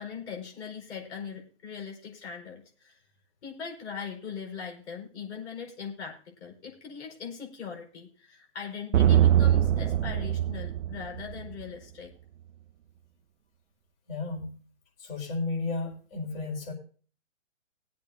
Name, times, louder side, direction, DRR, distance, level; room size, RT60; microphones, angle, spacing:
voice 1, 0.0-3.0 3.4-12.1, left 6 dB, 60° left, 0 dB, 5.1 m, -40 dB
sound 1, 8.9-11.6, right 11 dB, 80° right, 0.6 m, -23 dB
voice 2, 14.1-14.6 15.0-16.7, left 3 dB, 45° left, -2 dB, 4.9 m, -33 dB
21.0 x 8.4 x 2.7 m, 0.41 s
hypercardioid pair, 145°, 37 cm